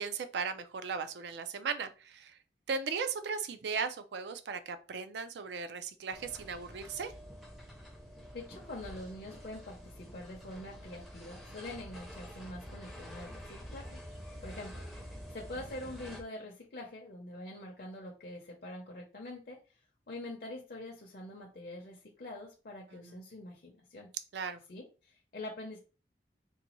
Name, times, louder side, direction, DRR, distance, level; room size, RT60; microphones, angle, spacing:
voice 1, 0.0-2.4 2.7-7.1 22.9-23.2 24.3-24.6, right 5 dB, 70° right, 10 dB, 0.4 m, -37 dB
sound 1, 6.1-16.2, equal, ahead, 0.5 m, -48 dB
voice 2, 8.3-14.0 14.4-19.6 20.1-24.1 24.7-25.8, left 1 dB, 50° left, -1 dB, 0.5 m, -45 dB
3.9 x 2.2 x 2.9 m, 0.33 s
head